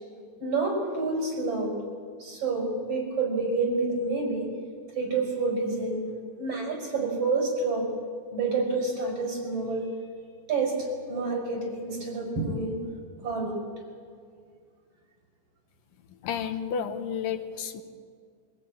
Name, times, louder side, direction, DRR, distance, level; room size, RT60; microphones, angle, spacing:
voice 1, 0.4-1.8 2.2-4.5 4.9-6.0 6.4-7.9 8.3-9.9 10.5-12.8 13.2-13.6, right 3 dB, 45° right, 1 dB, 6.1 m, -28 dB
voice 2, 16.2-17.8, left 7 dB, 80° left, 8 dB, 2.7 m, -31 dB
24.0 x 18.0 x 8.9 m, 2.2 s
omnidirectional pair, 3.8 m